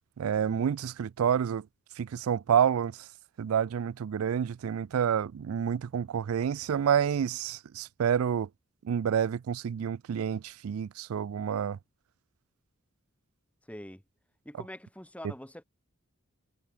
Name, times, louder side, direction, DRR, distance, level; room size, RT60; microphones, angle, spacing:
voice 1, 0.2-1.6 2.0-3.0 3.4-8.5 8.8-11.8, right 8 dB, 75° right, 0.4 m, -28 dB
voice 2, 13.7-14.0 14.5-15.6, left 1 dB, 5° left, 1.9 m, -44 dB
head